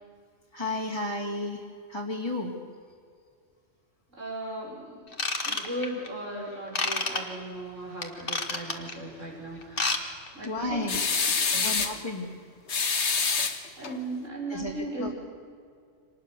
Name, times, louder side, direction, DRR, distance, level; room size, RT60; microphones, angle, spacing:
voice 1, 0.5-2.6 10.5-11.0 11.6-12.3 14.5-15.1, left 2 dB, 20° left, -3 dB, 2.5 m, -33 dB
voice 2, 4.2-5.1 5.4-9.9 10.3-10.8 11.2-11.8 13.8-15.1, right 1 dB, 85° right, -2 dB, 6.7 m, -37 dB
Ratchet pawl / Tools, 5.1-6.1 6.7-7.2 8.0-8.9 9.6-10.0 10.3-10.5 11.0-11.1, left 3 dB, 45° left, 2.0 m, -29 dB
sound 1, 10.9-12.0 12.7-14.0, left 5 dB, 65° left, 1.7 m, -26 dB
26.0 x 19.5 x 6.9 m, 2.2 s
omnidirectional pair, 1.3 m